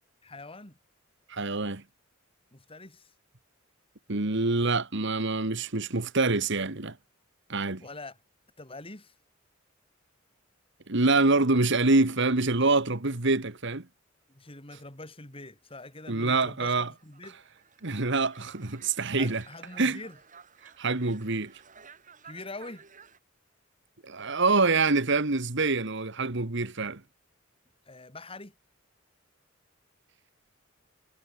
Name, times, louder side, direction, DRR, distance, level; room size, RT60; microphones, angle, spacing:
voice 1, 0.2-0.8 2.5-3.1 7.8-8.2 8.6-9.1 14.3-17.4 19.1-20.2 22.2-22.8 27.9-28.5, left 2 dB, 25° left, 4.3 m, -44 dB
voice 2, 1.3-1.8 4.1-7.0 7.5-7.8 10.9-13.9 16.1-16.9 17.8-19.4 19.8-20.0 20.8-21.5 24.0-27.0, right 3 dB, 60° right, 1.9 m, -26 dB
sound 1, 15.7-23.2, right 6 dB, 40° right, 5.5 m, -55 dB
head